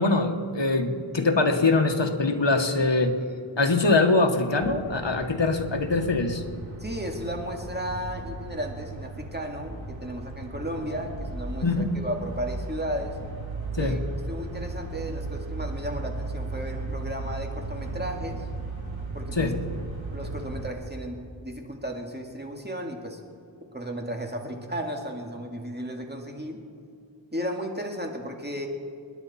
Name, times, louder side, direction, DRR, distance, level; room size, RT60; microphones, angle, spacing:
voice 1, 0.0-3.2 3.6-6.4 11.6-12.0 13.8-14.0 19.4-19.5, left 3 dB, 70° left, 4 dB, 1.5 m, -23 dB
sound 1, 4.6-20.7, right 2 dB, 80° right, 2.2 m, -36 dB
voice 2, 6.8-13.2 13.8-14.0 14.3-18.5 19.1-19.5 20.1-23.2 23.7-26.6 27.3-28.7, equal, 20° right, 2 dB, 2.1 m, -34 dB
28.5 x 10.5 x 4.2 m, 2.4 s
wide cardioid pair, 45°, 46 cm